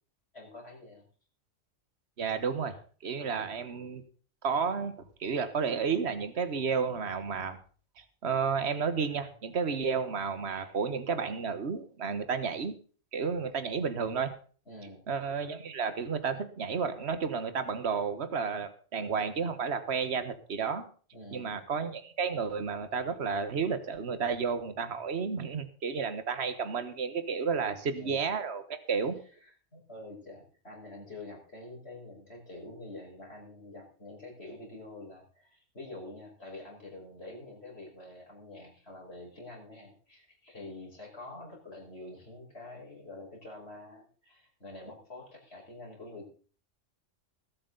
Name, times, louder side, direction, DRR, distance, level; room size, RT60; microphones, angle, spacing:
voice 1, 0.3-1.0 3.3-3.4 14.7-15.1 21.1-21.6 27.6-28.2 29.2-46.3, left 2 dB, 55° left, -1 dB, 5.8 m, -47 dB
voice 2, 2.2-2.7 3.0-4.0 4.4-4.9 5.2-7.6 8.0-12.7 13.1-14.3 15.1-20.8 21.3-29.2, right 5 dB, 55° right, 11 dB, 1.7 m, -32 dB
20.5 x 8.6 x 4.0 m, 0.41 s
omnidirectional pair, 1.3 m